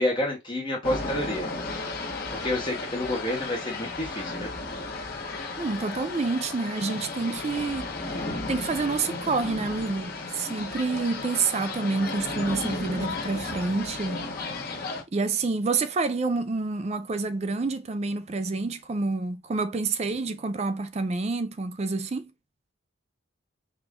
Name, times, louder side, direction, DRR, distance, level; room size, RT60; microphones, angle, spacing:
voice 1, 0.0-1.5 2.4-4.5, left 1 dB, 25° left, 1.0 m, -29 dB
sound 1, 0.8-15.0, left 3 dB, 50° left, 1.5 m, -34 dB
voice 2, 5.6-7.9 8.5-14.2 15.1-22.3, right 3 dB, 30° right, 0.4 m, -28 dB
5.0 x 2.4 x 3.6 m
head